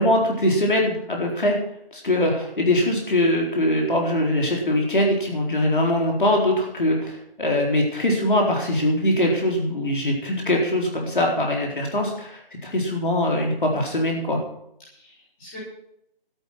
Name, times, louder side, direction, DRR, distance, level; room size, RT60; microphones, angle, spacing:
voice 1, 0.0-1.6 1.9-14.4, left 1 dB, 60° left, 0 dB, 4.2 m, -22 dB
voice 2, 14.8-15.6, left 2 dB, 10° left, -9 dB, 6.4 m, -43 dB
13.5 x 11.5 x 6.0 m, 0.75 s
figure-of-eight pair, 175°, 29 cm